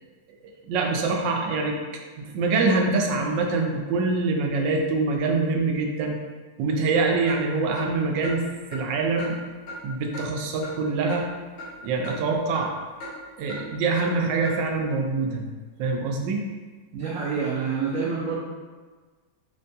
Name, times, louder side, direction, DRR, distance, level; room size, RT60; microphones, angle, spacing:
voice 1, 0.6-1.8 2.2-6.2 6.6-8.4 8.7-9.4 9.8-11.3 11.8-12.7 13.4-15.5 15.8-16.4, right 3 dB, 85° right, 2 dB, 1.3 m, -24 dB
Clock, 7.3-7.4 7.8-7.9 8.2-8.4 8.7-8.8 9.2-9.3 9.7-9.8 10.1-10.3 10.6-10.7 11.1-11.2 11.6-11.7 12.0-12.2 12.5-12.7 13.0-13.1 13.5-13.6 14.0-14.1 14.4-14.6, left 1 dB, 80° left, 1.9 m, -36 dB
voice 2, 16.9-18.4, right 5 dB, 70° right, -5 dB, 0.8 m, -27 dB
5.3 x 2.2 x 2.6 m, 1.4 s
omnidirectional pair, 1.9 m